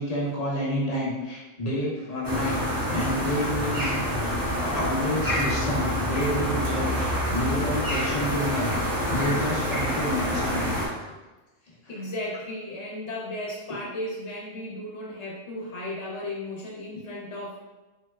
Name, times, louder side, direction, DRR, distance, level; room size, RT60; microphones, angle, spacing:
voice 1, 0.0-11.1, equal, 35° left, -5 dB, 0.8 m, -30 dB
sound 1, 2.2-10.9, equal, 20° right, 0.8 m, -27 dB
voice 2, 11.9-17.6, left 1 dB, 65° left, -4 dB, 1.1 m, -35 dB
3.9 x 3.3 x 2.3 m, 1.1 s
omnidirectional pair, 1.3 m